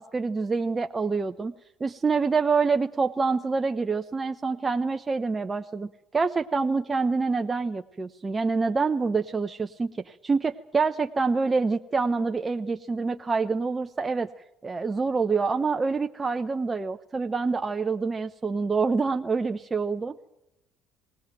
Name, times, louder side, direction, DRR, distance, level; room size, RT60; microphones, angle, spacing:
voice 1, 0.0-1.5 1.8-14.3 14.6-20.2, right 4 dB, 25° right, 7 dB, 0.8 m, -26 dB
19.5 x 18.0 x 8.9 m, 0.87 s
supercardioid pair, 80°, 0 cm